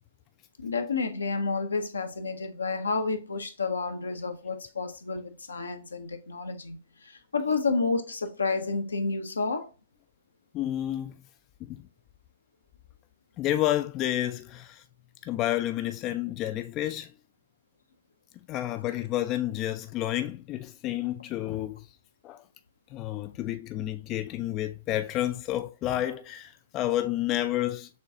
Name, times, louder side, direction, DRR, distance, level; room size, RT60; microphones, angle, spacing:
voice 1, 0.6-9.7, left 4 dB, 80° left, 0.7 m, -30 dB
voice 2, 10.5-11.1 11.6-11.8 13.4-14.8 15.2-17.1 18.5-21.9 22.2-22.4 22.9-27.9, left 13 dB, 30° left, 0.3 m, -30 dB
6.5 x 2.3 x 2.7 m
figure-of-eight pair, 115°, 0 cm